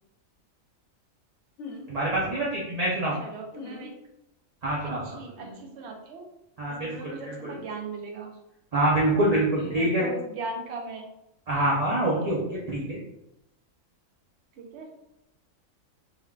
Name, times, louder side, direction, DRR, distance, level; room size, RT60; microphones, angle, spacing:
sound 1, 1.6-1.9 3.5-3.9 5.4-5.6 7.4-7.6 9.5-9.9 12.0-12.2, left 2 dB, 65° left, 0.9 m, -42 dB
voice 1, 1.9-3.1 4.6-5.0 6.6-7.6 8.7-10.1 11.5-12.4 12.7-13.0, right 1 dB, 45° right, -5 dB, 0.5 m, -25 dB
voice 2, 3.2-3.9 4.8-6.2 6.7-8.4 9.6-11.1 12.1-12.3 14.6-14.9, right 3 dB, 60° right, 1 dB, 0.9 m, -38 dB
3.5 x 3.2 x 2.3 m, 0.84 s
omnidirectional pair, 1.4 m